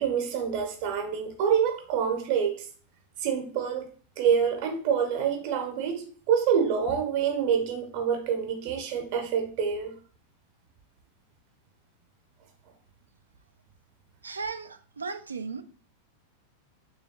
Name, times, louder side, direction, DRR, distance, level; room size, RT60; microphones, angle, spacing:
voice 1, 0.0-2.7 3.2-3.9 4.2-9.9, right 7 dB, 45° right, 0.8 m, -26 dB
voice 2, 14.2-15.6, right 4 dB, 75° right, 0.3 m, -36 dB
3.4 x 3.1 x 2.7 m
figure-of-eight pair, 90°, 0 cm